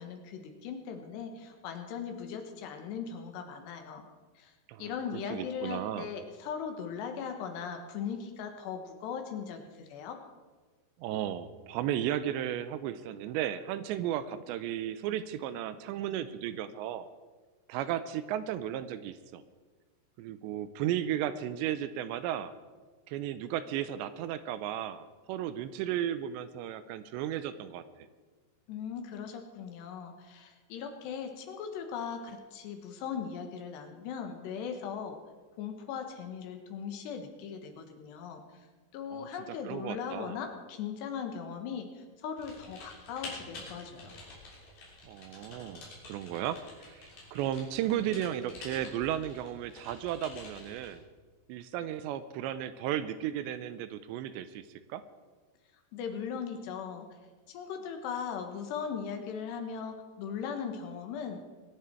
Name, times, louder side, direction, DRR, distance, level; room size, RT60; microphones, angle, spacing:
voice 1, 0.0-4.0 4.4-4.5 4.8-10.2 28.7-35.2 35.6-38.4 38.9-44.2 55.9-57.1 57.5-61.4, left 7 dB, 75° left, 5 dB, 3.3 m, -39 dB
voice 2, 5.3-6.1 11.0-17.1 17.7-19.4 20.2-22.5 23.1-27.8 39.1-39.3 39.6-40.4 45.0-46.6 46.9-51.0 51.5-54.6 54.9-55.0, right 11 dB, 85° right, 13 dB, 2.8 m, -34 dB
Typing, 42.4-51.0, left 3 dB, 55° left, 4.9 m, -48 dB
22.5 x 10.5 x 4.5 m, 1.4 s
omnidirectional pair, 5.2 m